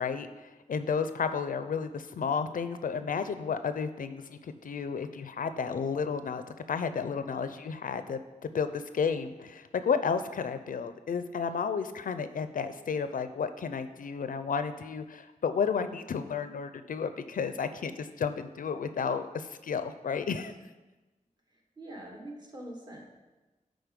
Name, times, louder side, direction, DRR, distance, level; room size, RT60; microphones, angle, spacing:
voice 1, 0.0-6.4 6.7-20.5, left 6 dB, 90° left, 10 dB, 0.5 m, -32 dB
voice 2, 21.5-23.1, right 1 dB, 30° right, -1 dB, 1.4 m, -44 dB
9.4 x 3.9 x 5.2 m, 1.2 s
wide cardioid pair, 120°, 14 cm